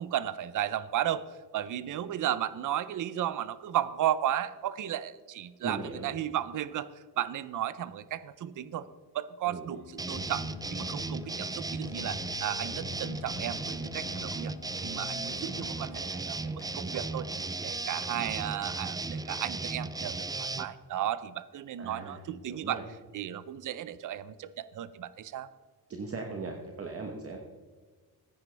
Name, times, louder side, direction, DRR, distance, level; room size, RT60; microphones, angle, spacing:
voice 1, 0.0-8.9 9.1-14.5 14.8-17.3 17.6-22.8 23.1-25.5, right 11 dB, 50° right, 16 dB, 0.6 m, -34 dB
voice 2, 5.6-6.1 9.5-9.6 21.8-22.2 22.5-22.8 25.9-27.4, right 4 dB, 35° right, 3 dB, 1.1 m, -38 dB
sound 1, 9.7-16.0, left 15 dB, 75° left, 0.5 m, -47 dB
sound 2, 10.0-20.7, right 3 dB, 10° right, 0.3 m, -36 dB
sound 3, 13.3-18.6, left 1 dB, 5° left, 1.0 m, -56 dB
15.5 x 9.5 x 3.3 m, 1.4 s
cardioid pair, 130°, 39 cm